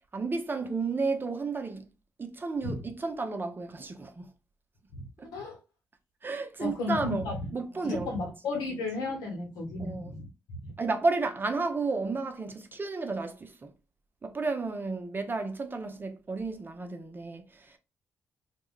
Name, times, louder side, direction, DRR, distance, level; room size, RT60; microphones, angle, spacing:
voice 1, 0.1-1.9 2.2-4.3 5.2-5.3 6.2-7.3 7.5-8.2 9.8-10.1 10.8-13.7 14.2-17.8, right 3 dB, 30° right, 0.6 m, -32 dB
voice 2, 4.9-5.6 6.6-7.5 7.8-10.3 10.6-10.7, left 3 dB, 75° left, 1.0 m, -34 dB
2.3 x 2.1 x 3.7 m
hypercardioid pair, 45°, 6 cm